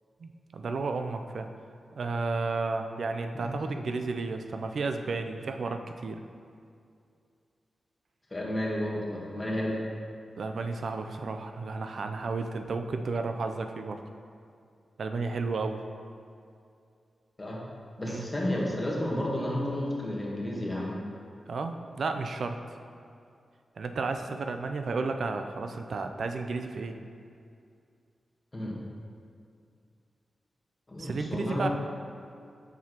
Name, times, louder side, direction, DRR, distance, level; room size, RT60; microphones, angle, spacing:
voice 1, 0.2-1.5 1.9-6.2 10.4-14.0 15.0-15.8 18.1-18.3 21.5-22.6 23.8-27.0 31.0-31.7, right 3 dB, 65° right, 6 dB, 0.4 m, -32 dB
voice 2, 8.3-9.8 17.4-17.6 18.0-21.0 28.5-28.9 30.9-31.7, left 1 dB, 25° left, -4 dB, 1.3 m, -32 dB
7.3 x 6.1 x 2.9 m, 2.4 s
wide cardioid pair, 100°, 0 cm